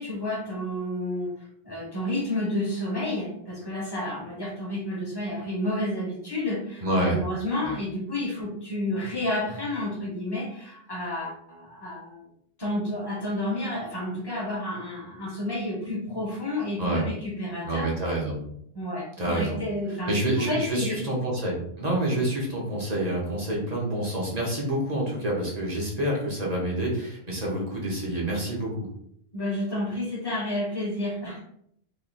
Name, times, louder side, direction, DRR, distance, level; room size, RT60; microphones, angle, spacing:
voice 1, 0.0-1.3 1.6-12.3 12.6-17.9 18.7-21.0 29.3-31.4, left 1 dB, 25° left, -2 dB, 1.0 m, -30 dB
voice 2, 6.8-7.2 7.6-7.7 16.8-17.0 17.6-18.4 19.2-19.6 20.1-28.9, right 1 dB, 40° right, -3 dB, 1.1 m, -27 dB
3.2 x 2.7 x 4.0 m, 0.71 s
omnidirectional pair, 1.1 m